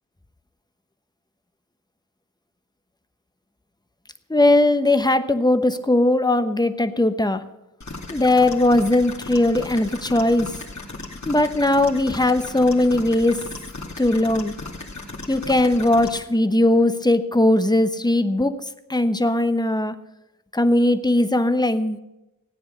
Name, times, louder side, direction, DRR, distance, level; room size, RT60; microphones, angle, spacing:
voice 1, 4.3-7.4 8.1-10.5 11.3-13.3 14.0-14.5 15.3-18.5 18.9-19.9 20.5-22.0, left 1 dB, 10° left, 10 dB, 0.9 m, -19 dB
sound 1, 7.8-16.2, left 2 dB, 55° left, 2.5 m, -36 dB
15.0 x 9.6 x 6.7 m, 0.94 s
wide cardioid pair, 60°, 34 cm